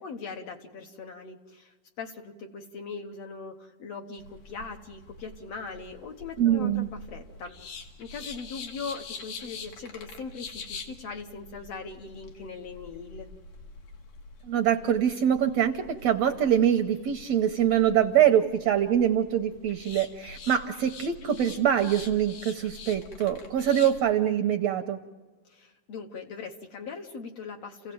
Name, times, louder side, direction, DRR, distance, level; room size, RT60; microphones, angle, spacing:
voice 1, 0.0-13.3 25.5-27.9, left 4 dB, 60° left, 4 dB, 1.8 m, -40 dB
sound 1, 4.2-24.0, left 4 dB, 80° left, 3.6 m, -45 dB
voice 2, 6.4-6.9 14.4-25.0, right 9 dB, 70° right, 7 dB, 1.7 m, -24 dB
29.5 x 16.5 x 7.8 m, 1.3 s
omnidirectional pair, 3.8 m